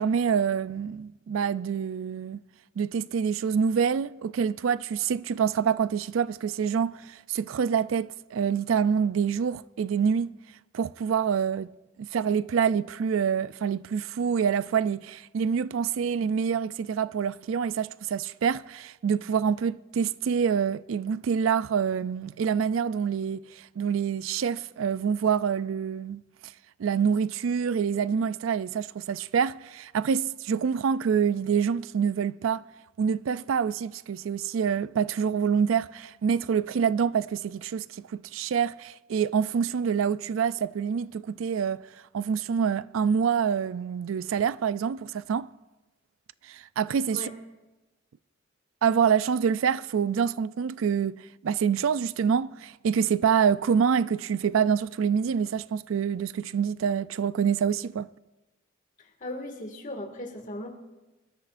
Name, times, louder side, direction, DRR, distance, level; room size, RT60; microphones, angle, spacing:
voice 1, 0.0-2.4 2.8-10.3 10.7-11.7 12.0-26.2 26.8-32.6 33.0-41.8 42.1-45.5 46.5-47.3 48.8-58.1, right 7 dB, 85° right, 0.4 m, -26 dB
voice 2, 59.2-60.7, left 1 dB, 40° left, 2.0 m, -37 dB
25.0 x 13.0 x 2.5 m
head